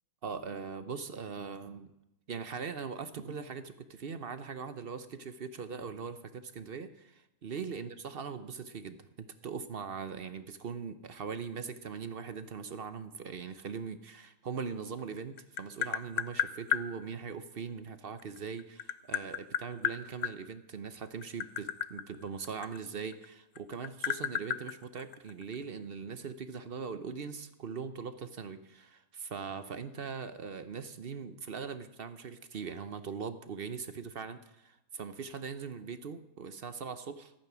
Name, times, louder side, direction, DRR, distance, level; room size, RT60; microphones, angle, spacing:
voice 1, 0.2-1.9 2.3-9.0 9.4-37.3, right 6 dB, 50° right, 11 dB, 0.8 m, -41 dB
Tap, 15.0-16.9 18.2-20.3 21.1-23.2 23.5-25.5, left 10 dB, 65° left, 0.9 m, -33 dB
14.5 x 9.0 x 6.0 m, 0.89 s
omnidirectional pair, 1.6 m